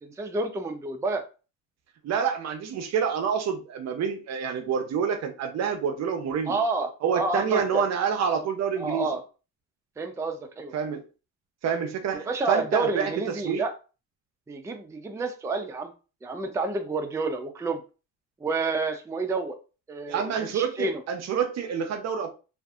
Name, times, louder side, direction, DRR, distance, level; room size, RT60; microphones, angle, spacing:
voice 1, 0.0-1.2 6.5-7.8 8.8-9.2 10.0-10.7 12.1-13.7 14.5-15.9 16.2-17.8 18.4-19.6 19.9-21.0, right 3 dB, 10° right, 0.4 m, -29 dB
voice 2, 2.0-6.6 7.0-9.1 10.7-11.0 11.6-13.6 20.1-22.3, right 7 dB, 60° right, 0.6 m, -27 dB
2.6 x 2.4 x 2.3 m
cardioid pair, 90°, 30 cm